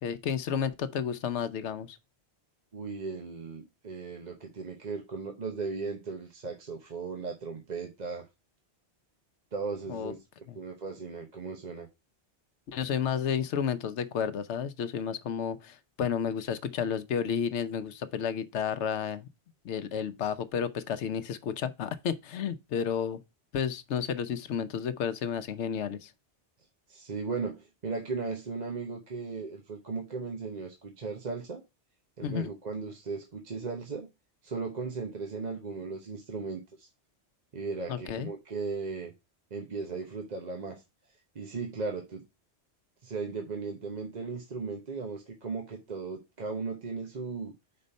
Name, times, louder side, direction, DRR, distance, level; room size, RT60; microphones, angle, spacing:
voice 1, 0.0-2.0 9.9-10.1 10.5-10.6 12.7-19.3 19.6-23.2 23.5-26.1 32.2-32.5 37.9-38.3, left 8 dB, 85° left, 1.0 m, -31 dB
voice 2, 2.7-8.3 9.5-10.2 10.5-11.9 26.9-31.6 32.2-34.1 34.4-36.9 37.5-39.1 39.5-40.8 41.3-42.3 43.0-47.5, right 4 dB, 40° right, 1.0 m, -37 dB
5.2 x 4.4 x 5.3 m
omnidirectional pair, 1.1 m